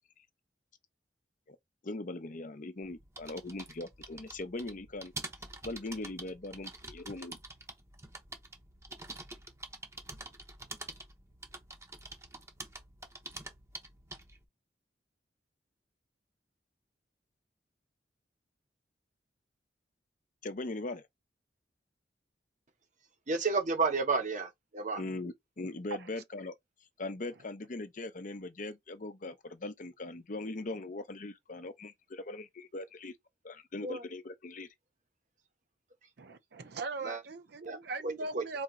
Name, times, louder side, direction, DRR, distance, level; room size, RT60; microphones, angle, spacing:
voice 1, 1.8-5.1 5.6-7.4 20.4-21.1 25.0-26.5 27.0-33.1 33.4-34.7, left 2 dB, 45° left, 0.7 m, -40 dB
sound 1, 2.9-14.4, right 2 dB, 15° right, 0.9 m, -47 dB
voice 2, 23.3-25.0 33.8-34.0 37.0-37.2 37.6-37.8 38.0-38.4, right 4 dB, 45° right, 1.0 m, -31 dB
voice 3, 36.2-38.6, right 3 dB, 65° right, 0.6 m, -39 dB
4.2 x 2.9 x 3.7 m
head